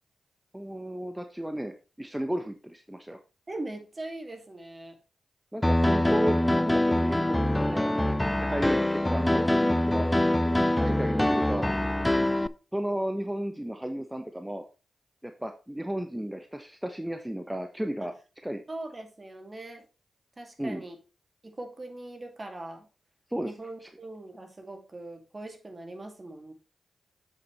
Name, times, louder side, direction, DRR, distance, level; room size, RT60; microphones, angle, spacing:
voice 1, 0.5-3.2 5.5-7.9 8.5-10.1 10.8-11.7 12.7-14.6 15.2-18.1 18.4-18.6 20.6-20.8 23.3-23.5 23.8-23.9, right 1 dB, 10° right, 6 dB, 1.0 m, -34 dB
voice 2, 3.5-5.0 7.7-8.3 18.0-18.1 18.7-19.9 20.4-21.0 21.4-22.9 23.4-26.5, right 2 dB, 35° right, 5 dB, 2.3 m, -41 dB
Piano, 5.6-12.5, left 1 dB, 15° left, 0.5 m, -24 dB
7.6 x 7.1 x 3.2 m, 0.32 s
supercardioid pair, 45°, 0 cm